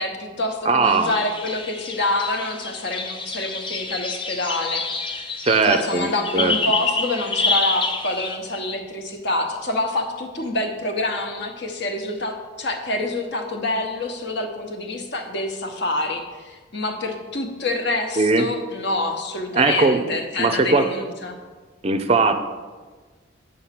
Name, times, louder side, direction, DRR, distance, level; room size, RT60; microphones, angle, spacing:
voice 1, 0.0-4.8 5.7-21.4, left 2 dB, 55° left, 4 dB, 1.1 m, -27 dB
voice 2, 0.7-1.1 5.4-6.5 18.2-18.5 19.5-20.0 20.4-20.9 21.8-22.3, right 3 dB, 30° right, 8 dB, 0.5 m, -19 dB
sound 1, 0.8-8.3, left 3 dB, 25° left, 0.7 m, -28 dB
8.5 x 5.0 x 5.9 m, 1.4 s
head